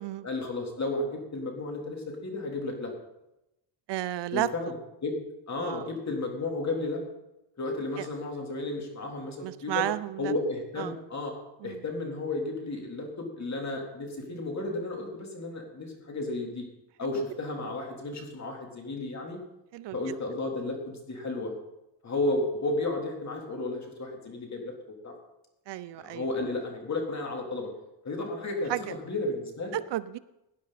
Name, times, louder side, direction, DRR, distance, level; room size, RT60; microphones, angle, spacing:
voice 1, 0.2-2.9 4.3-4.7 5.0-5.1 5.5-7.0 7.6-9.9 10.2-11.3 11.6-16.6 17.0-19.4 19.9-21.5 22.0-24.7 25.0-25.1 26.0-27.7 28.0-28.7 29.0-29.8, left 2 dB, 35° left, 1 dB, 3.5 m, -33 dB
voice 2, 3.9-4.5 5.6-5.9 8.0-8.1 9.4-10.3 10.8-11.0 11.6-11.8 19.7-20.0 25.7-26.3 28.7-28.8 29.7-30.2, right 14 dB, 70° right, 16 dB, 0.6 m, -32 dB
18.0 x 10.5 x 4.2 m, 0.91 s
cardioid pair, 105°, 44 cm